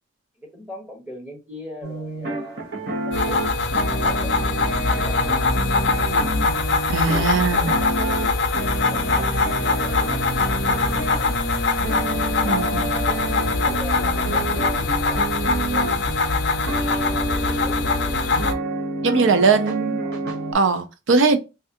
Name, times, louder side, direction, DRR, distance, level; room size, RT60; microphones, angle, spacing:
voice 1, 0.4-2.6 3.1-3.4 3.8-6.1 7.1-11.3 12.4-13.2 13.6-16.1 17.0-18.2 19.2-20.5, left 1 dB, 5° right, 1.0 m, -40 dB
sound 1, 1.8-20.5, right 2 dB, 55° right, 0.9 m, -29 dB
sound 2, 3.1-18.5, left 3 dB, 55° left, 0.4 m, -23 dB
voice 2, 6.9-7.8 12.4-12.9 19.0-20.0 20.5-21.4, right 4 dB, 75° right, 0.5 m, -20 dB
3.2 x 2.4 x 2.7 m
head